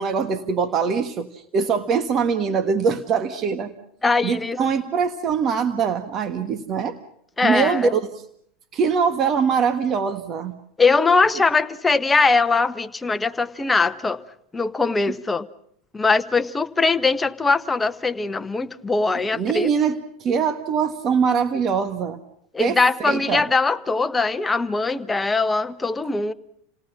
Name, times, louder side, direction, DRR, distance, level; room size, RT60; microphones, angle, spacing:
voice 1, 0.0-3.7 4.2-7.0 7.4-8.1 8.7-10.5 19.3-22.2 22.6-23.4, right 6 dB, 40° right, 9 dB, 1.5 m, -23 dB
voice 2, 4.0-4.6 7.4-7.9 10.8-14.2 14.5-15.5 15.9-19.7 22.5-26.3, left 3 dB, 15° left, 11 dB, 1.1 m, -21 dB
29.0 x 18.5 x 5.8 m, 0.66 s
hypercardioid pair, 95°, 0 cm